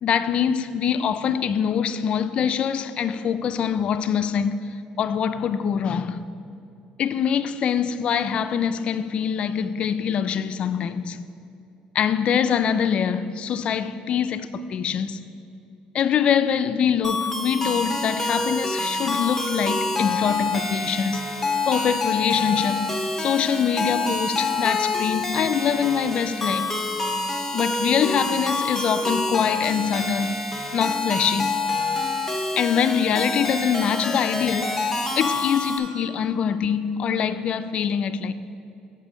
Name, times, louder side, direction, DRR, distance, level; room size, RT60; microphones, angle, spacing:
voice 1, 0.0-4.6 5.0-6.2 7.0-11.2 11.9-15.2 15.9-21.4 21.7-22.9 23.2-26.7 27.5-30.4 30.7-31.6 32.6-38.3, left 7 dB, 50° left, 0.3 m, -24 dB
sound 1, 17.0-35.8, left 2 dB, 10° left, 0.8 m, -27 dB
7.7 x 5.4 x 5.0 m
cardioid pair, 115°, 2 cm